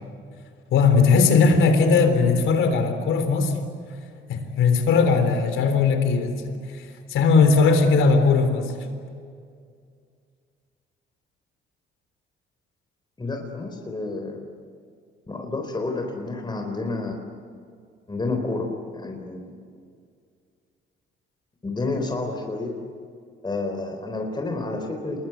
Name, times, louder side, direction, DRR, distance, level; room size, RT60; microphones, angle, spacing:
voice 1, 0.7-3.6 4.3-8.8, left 4 dB, 80° left, 8 dB, 3.7 m, -19 dB
voice 2, 13.2-14.5 15.3-17.1 18.1-19.5 21.6-22.7 23.4-25.3, left 3 dB, 20° left, 2 dB, 4.0 m, -30 dB
27.5 x 21.5 x 9.4 m, 2.2 s
cardioid pair, 90°, 20 cm